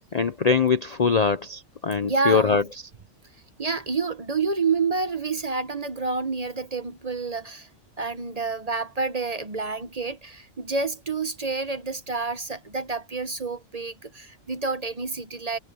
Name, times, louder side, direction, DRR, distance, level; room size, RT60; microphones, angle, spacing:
voice 1, 0.1-2.9, left 5 dB, 45° left, 0.5 m, -23 dB
voice 2, 2.0-2.7 3.6-7.7 8.0-15.6, right 4 dB, 35° right, 0.9 m, -28 dB
omnidirectional pair, 1.3 m